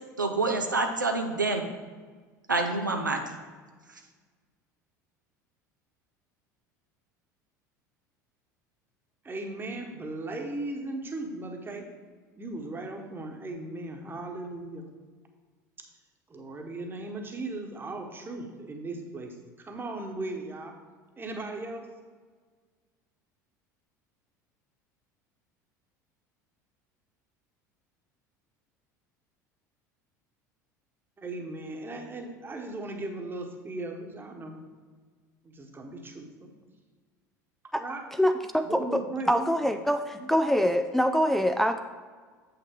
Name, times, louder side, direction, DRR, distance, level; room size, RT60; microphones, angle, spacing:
voice 1, 0.2-1.6 2.5-3.2, right 3 dB, 90° right, 3 dB, 0.6 m, -27 dB
voice 2, 9.2-11.9 12.4-14.8 16.3-20.7 21.2-21.9 31.2-34.6 35.4-36.5 37.8-38.0 38.6-39.7 40.1-40.3, right 2 dB, 20° right, 3 dB, 1.2 m, -37 dB
voice 3, 38.2-39.0 39.3-41.8, equal, 5° left, 8 dB, 0.3 m, -24 dB
7.7 x 5.7 x 3.6 m, 1.5 s
figure-of-eight pair, 70°, 10 cm